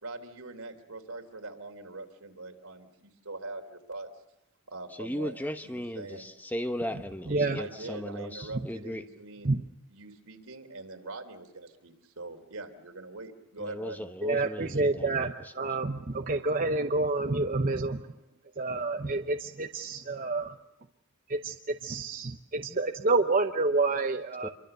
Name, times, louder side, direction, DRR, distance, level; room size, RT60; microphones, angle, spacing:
voice 1, 0.0-4.1 4.7-5.4 5.6-6.3 7.3-9.6 9.9-14.1, right 3 dB, 80° right, 5 dB, 3.3 m, -43 dB
voice 2, 5.0-9.0 13.6-15.5 24.4-24.5, equal, 10° left, 8 dB, 0.9 m, -37 dB
voice 3, 14.2-18.0 18.6-20.5 21.3-21.5 21.8-24.5, right 3 dB, 40° right, 5 dB, 0.8 m, -28 dB
26.5 x 23.5 x 6.8 m, 0.87 s
head